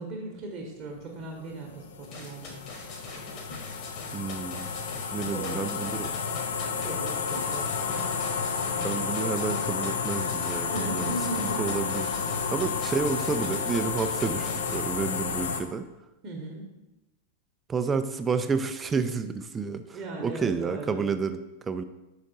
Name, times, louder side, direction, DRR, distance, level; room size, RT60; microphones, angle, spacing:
voice 1, 0.0-2.6 5.1-5.7 6.8-8.1 8.7-8.9 10.7-11.7 12.4-12.6 16.2-16.7 19.7-21.0, right 2 dB, 35° right, -1 dB, 1.0 m, -38 dB
sound 1, 1.2-15.6, left 6 dB, 65° left, 0.5 m, -31 dB
sound 2, 2.0-14.8, left 3 dB, 35° left, 1.3 m, -42 dB
voice 2, 4.1-4.7 5.1-6.1 8.8-15.9 17.7-21.8, right 5 dB, 20° right, 10 dB, 0.4 m, -30 dB
5.1 x 4.8 x 4.1 m, 0.98 s
figure-of-eight pair, 90°, 0 cm